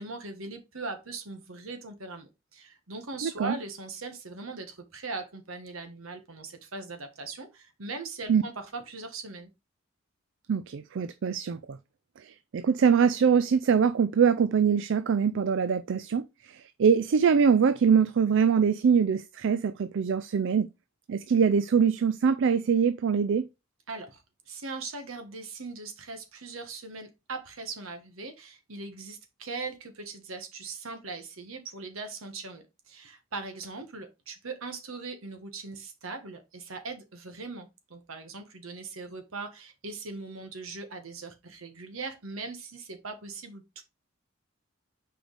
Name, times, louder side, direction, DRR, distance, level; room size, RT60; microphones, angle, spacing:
voice 1, 0.0-9.5 23.9-43.8, right 3 dB, 85° right, 1.4 m, -40 dB
voice 2, 3.2-3.5 8.3-8.4 10.5-11.8 12.2-20.7 21.1-23.5, right 6 dB, 65° right, 0.4 m, -23 dB
6.3 x 4.8 x 3.4 m
head